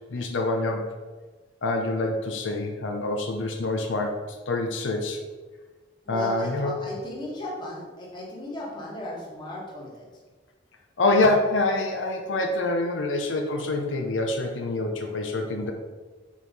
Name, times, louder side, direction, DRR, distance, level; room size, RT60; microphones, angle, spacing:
voice 1, 0.1-0.9 1.6-5.2 6.1-6.7 11.0-15.7, left 2 dB, 85° left, 3 dB, 0.7 m, -26 dB
voice 2, 6.0-10.0, left 1 dB, 25° left, -4 dB, 1.4 m, -36 dB
5.4 x 4.7 x 4.1 m, 1.3 s
head